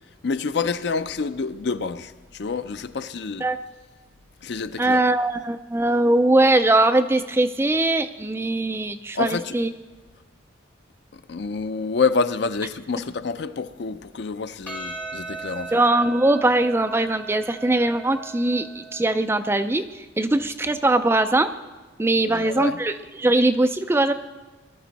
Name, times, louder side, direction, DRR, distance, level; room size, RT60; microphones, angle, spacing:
voice 1, 0.2-3.5 4.4-5.0 9.1-9.6 11.1-15.8 22.2-22.8, left 4 dB, 60° left, 0.5 m, -27 dB
voice 2, 4.8-9.7 15.7-21.5 22.0-24.1, right 2 dB, 10° right, 0.3 m, -21 dB
Percussion, 14.7-19.3, right 3 dB, 10° left, 3.1 m, -38 dB
19.5 x 12.0 x 4.1 m
head